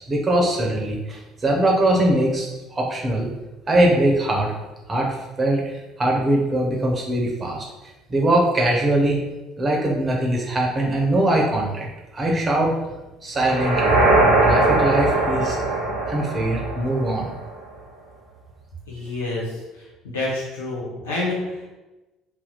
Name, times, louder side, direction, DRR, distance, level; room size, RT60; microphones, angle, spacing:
voice 1, 0.0-3.3 3.7-4.5 4.9-7.6 8.1-9.3 9.6-12.7 13.2-14.0 14.4-15.6 16.1-17.3, right 1 dB, 30° right, -1 dB, 0.9 m, -21 dB
sound 1, 13.4-17.5, right 2 dB, 75° right, 0.8 m, -20 dB
voice 2, 18.9-19.6 20.0-21.7, left 2 dB, 80° left, -5 dB, 0.9 m, -28 dB
2.8 x 2.2 x 3.9 m, 1.1 s
figure-of-eight pair, 55°, 0 cm